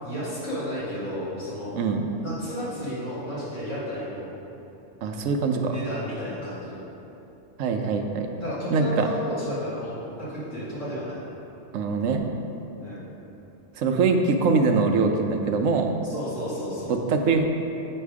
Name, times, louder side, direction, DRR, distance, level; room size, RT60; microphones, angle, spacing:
voice 1, 0.0-1.8 2.2-4.3 5.6-6.7 8.4-9.9 10.2-11.2 12.8-13.0 16.1-16.9, equal, 75° left, -9 dB, 2.2 m, -32 dB
voice 2, 1.7-2.1 5.0-5.8 7.6-8.3 8.7-9.1 11.7-12.2 13.8-15.9 16.9-17.4, right 4 dB, 80° right, 4 dB, 1.0 m, -23 dB
9.3 x 3.2 x 4.8 m, 3.0 s
omnidirectional pair, 1.3 m